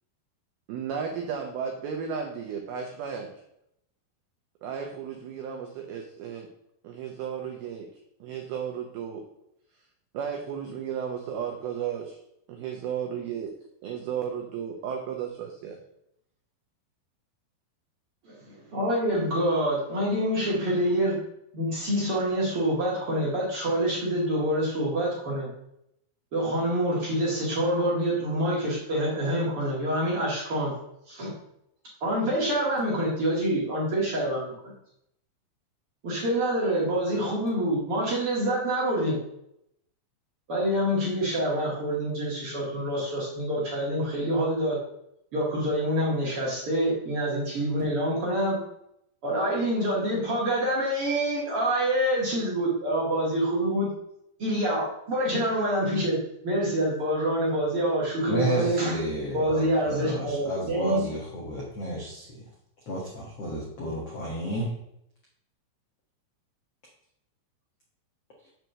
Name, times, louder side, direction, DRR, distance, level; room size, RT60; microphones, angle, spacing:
voice 1, 0.7-3.3 4.6-6.5 6.8-7.9 8.2-9.3 10.1-12.2 12.5-13.5 13.8-15.8, right 7 dB, 80° right, 2 dB, 2.1 m, -34 dB
voice 2, 18.2-21.2 21.5-25.5 26.3-30.7 31.1-31.3 32.0-34.5 36.0-39.2 40.5-44.8 45.3-48.6 49.2-53.9 54.4-59.0 59.3-61.1, right 1 dB, 50° right, -5 dB, 1.7 m, -26 dB
voice 3, 58.2-62.3 62.9-64.7, equal, 80° left, -4 dB, 1.3 m, -31 dB
7.5 x 4.6 x 6.6 m, 0.77 s
omnidirectional pair, 5.5 m